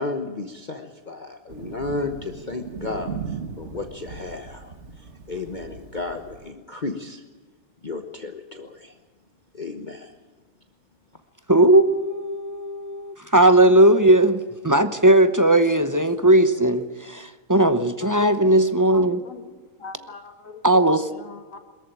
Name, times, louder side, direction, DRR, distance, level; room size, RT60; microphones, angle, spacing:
voice 1, 0.0-7.2 7.8-8.9 9.5-10.2, left 3 dB, 35° left, 5 dB, 1.2 m, -33 dB
Thunder, 1.5-6.5, right 6 dB, 55° right, 1.5 m, -38 dB
voice 2, 11.5-19.2 20.6-21.1, right 1 dB, 15° right, 11 dB, 0.7 m, -18 dB
voice 3, 18.0-18.6 19.0-19.5 19.8-21.6, left 4 dB, 70° left, 8 dB, 2.2 m, -40 dB
22.5 x 14.0 x 9.2 m, 1.4 s
omnidirectional pair, 1.4 m